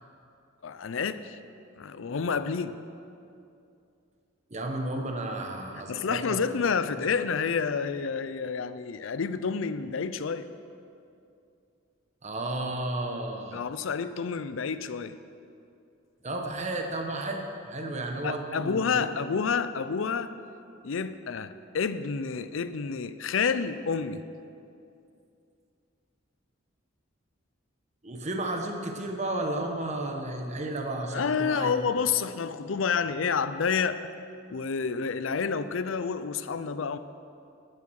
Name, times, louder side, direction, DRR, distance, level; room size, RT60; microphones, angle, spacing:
voice 1, 0.6-1.4 1.8-2.8 5.9-10.5 13.5-15.2 18.2-20.3 20.8-24.2 31.1-34.0 34.5-37.0, left 5 dB, 75° left, 13 dB, 0.5 m, -29 dB
voice 2, 4.5-6.4 12.2-13.6 16.2-19.1 28.0-31.8, right 1 dB, 35° right, 3 dB, 1.1 m, -33 dB
11.5 x 9.5 x 6.3 m, 2.5 s
head